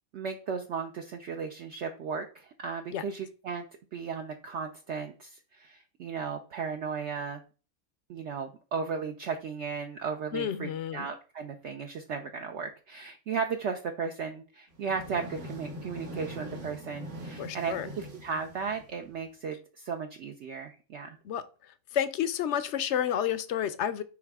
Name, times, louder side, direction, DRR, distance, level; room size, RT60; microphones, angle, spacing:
voice 1, 0.1-3.6 3.9-7.4 8.1-21.2, right 5 dB, 60° right, 4 dB, 0.9 m, -35 dB
voice 2, 10.3-11.1 17.4-17.9 21.2-21.4 21.9-24.0, left 9 dB, 65° left, 14 dB, 0.8 m, -30 dB
sound 1, 14.7-19.3, equal, 80° right, 2.3 m, -42 dB
9.7 x 3.6 x 3.5 m, 0.36 s
omnidirectional pair, 1.5 m